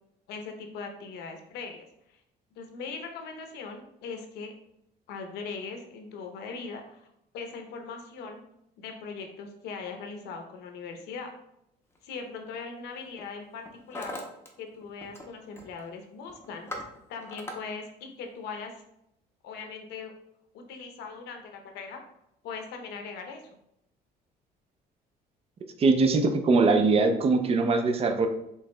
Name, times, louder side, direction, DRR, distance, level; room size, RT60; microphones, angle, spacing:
voice 1, 0.3-2.2 2.5-4.5 5.1-7.1 7.3-8.4 8.8-11.3 12.0-14.2 14.6-16.7 17.1-18.7 19.4-20.1 20.5-22.0 22.4-23.4, left 5 dB, 85° left, 4 dB, 0.7 m, -40 dB
Hammer, 12.0-12.2 13.0-13.3 13.5-14.5 14.8-15.3 15.5-15.9 16.3-17.6, left 1 dB, 15° left, 0.7 m, -40 dB
voice 2, 25.8-28.3, right 3 dB, 35° right, 6 dB, 0.5 m, -22 dB
4.6 x 3.3 x 2.2 m, 0.79 s
cardioid pair, 110°, 17 cm